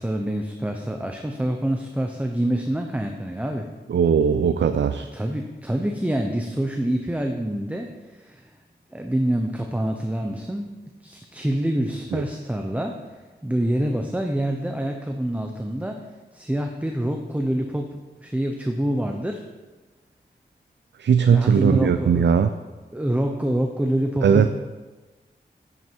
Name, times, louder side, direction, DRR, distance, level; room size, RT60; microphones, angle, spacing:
voice 1, 0.0-3.7 5.1-8.5 8.9-16.0 16.3-19.4 21.3-22.3 22.9-24.5, right 1 dB, 10° right, 3 dB, 0.8 m, -26 dB
voice 2, 3.9-5.1 12.1-12.2 21.0-22.5 24.2-24.5, right 7 dB, 75° right, 9 dB, 0.5 m, -19 dB
11.0 x 9.6 x 4.6 m, 1.2 s
wide cardioid pair, 125°, 19 cm